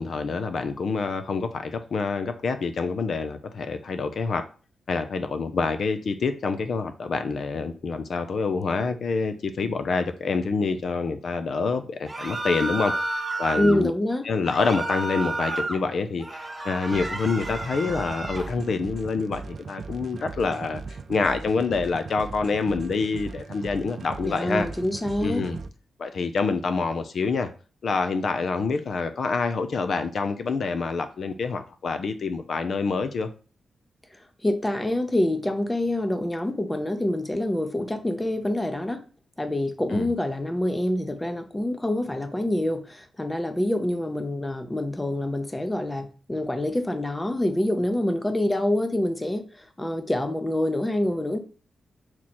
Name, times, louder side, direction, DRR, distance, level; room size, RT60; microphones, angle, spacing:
voice 1, 0.0-4.4 4.9-13.9 14.2-24.7 25.2-25.6 26.0-27.5 27.8-33.3 39.9-40.1, left 4 dB, 55° left, 0.5 m, -27 dB
sound 1, 12.1-13.8 14.5-15.8 16.2-18.5, right 2 dB, 15° right, 0.9 m, -31 dB
voice 2, 13.6-14.3 24.2-25.4 34.4-39.0 39.4-51.4, left 1 dB, 10° left, 0.7 m, -26 dB
sound 2, 16.9-25.7, right 4 dB, 50° right, 0.5 m, -38 dB
6.2 x 4.4 x 4.3 m
wide cardioid pair, 155°, 0 cm